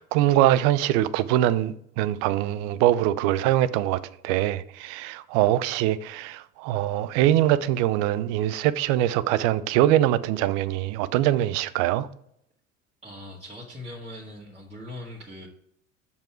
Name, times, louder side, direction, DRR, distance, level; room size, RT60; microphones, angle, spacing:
voice 1, 0.0-12.1, right 13 dB, 65° right, 0.6 m, -23 dB
voice 2, 13.0-15.5, left 1 dB, 15° right, 1.9 m, -40 dB
6.9 x 5.7 x 4.5 m
hypercardioid pair, 70°, 39 cm